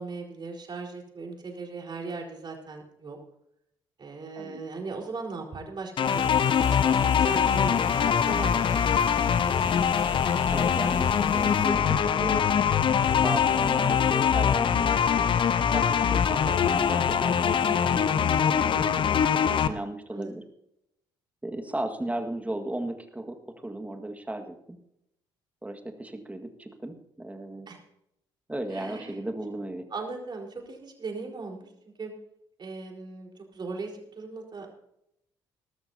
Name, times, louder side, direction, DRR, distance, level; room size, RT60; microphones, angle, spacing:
voice 1, 0.0-3.2 4.0-6.4 6.7-8.6 9.0-9.5 18.7-18.9 19.5-19.8 20.1-20.3 27.7-27.8 28.7-29.2 29.9-31.7 32.0-32.1 32.6-34.7, right 4 dB, 40° right, 1 dB, 4.3 m, -38 dB
sound 1, 6.0-19.7, left 7 dB, 45° left, 0.9 m, -23 dB
sound 2, 6.0-11.7, left 2 dB, 25° left, 3.7 m, -46 dB
voice 2, 8.7-9.0 10.5-12.5 13.1-14.9 15.7-18.1 18.4-20.4 21.4-24.8 25.6-27.7 28.5-29.9, right 1 dB, 10° right, 5 dB, 1.8 m, -36 dB
20.5 x 12.5 x 2.8 m, 0.79 s
hypercardioid pair, 50°, 12 cm